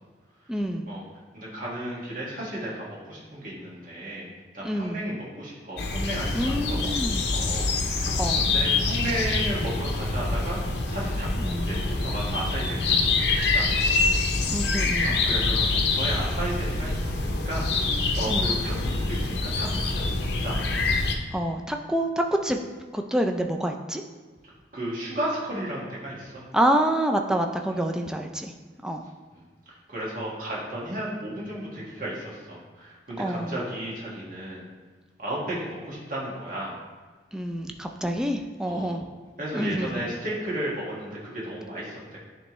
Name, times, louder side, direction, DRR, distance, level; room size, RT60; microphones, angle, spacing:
voice 1, 0.5-0.9 4.6-5.0 6.3-7.2 8.2-8.5 11.4-11.7 14.5-15.2 18.3-18.5 21.3-22.6 22.9-24.0 26.5-28.5 28.8-29.0 33.2-33.5 37.3-39.0 39.5-40.0, right 1 dB, 5° right, 3 dB, 0.3 m, -27 dB
voice 2, 1.3-4.3 4.5-11.3 11.6-14.0 15.0-17.7 18.2-20.6 24.7-26.4 29.3-29.4 29.9-34.6 35.2-36.7 38.6-39.0 39.4-42.2, right 1 dB, 45° right, -6 dB, 1.7 m, -34 dB
sound 1, 5.8-21.1, left 3 dB, 60° left, 0.6 m, -25 dB
10.0 x 3.4 x 3.1 m, 1.4 s
head